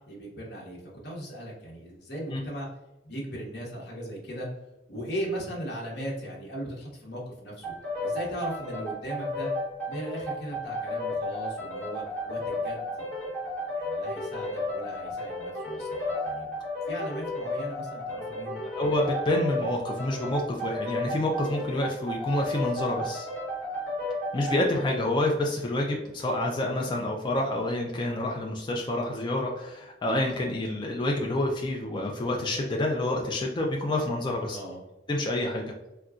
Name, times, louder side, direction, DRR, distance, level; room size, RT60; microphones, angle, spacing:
voice 1, 0.1-0.8 1.0-2.7 3.0-4.5 4.9-7.7 8.0-9.5 9.9-13.1 13.8-16.6 16.9-18.6 34.5-34.8, equal, 60° left, -3 dB, 0.9 m, -38 dB
sound 1, 7.6-25.1, left 1 dB, 10° left, 1.1 m, -33 dB
voice 2, 18.8-23.3 24.3-34.6 35.1-35.6, left 1 dB, 25° left, 0 dB, 0.3 m, -28 dB
3.8 x 2.2 x 2.4 m, 0.97 s
head